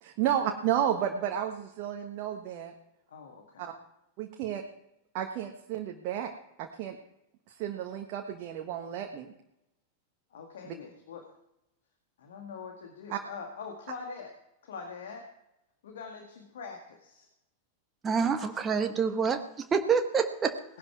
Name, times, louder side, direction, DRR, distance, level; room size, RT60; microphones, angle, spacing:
voice 1, 0.0-2.7 3.6-3.7 4.2-4.6 5.1-6.3 6.6-7.0 7.5-9.3 10.6-10.7 13.1-13.2, right 10 dB, 45° right, 4 dB, 1.4 m, -32 dB
voice 2, 3.1-3.7 10.3-11.3 12.2-14.3 14.6-15.2 15.8-17.3 20.7-20.8, left 5 dB, 60° left, 3 dB, 1.9 m, -43 dB
voice 3, 18.0-20.6, right 6 dB, 20° right, 6 dB, 1.3 m, -27 dB
18.5 x 11.0 x 4.7 m, 0.86 s
figure-of-eight pair, 90°, 0 cm